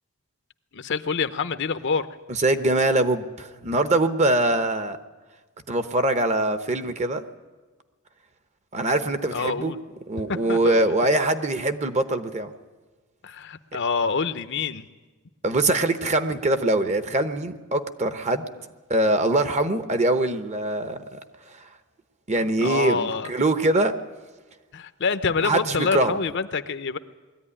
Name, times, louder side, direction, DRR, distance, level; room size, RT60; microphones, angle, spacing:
voice 1, 0.7-2.1 9.3-9.8 10.3-10.9 13.2-14.9 22.6-23.3 24.7-27.0, left 5 dB, 55° left, 11 dB, 0.7 m, -26 dB
voice 2, 2.3-5.0 5.7-7.2 8.7-9.7 10.1-12.5 15.4-18.4 18.9-21.2 22.3-23.9 25.4-26.1, right 2 dB, 30° right, 9 dB, 1.0 m, -23 dB
21.0 x 14.0 x 9.9 m, 1.3 s
head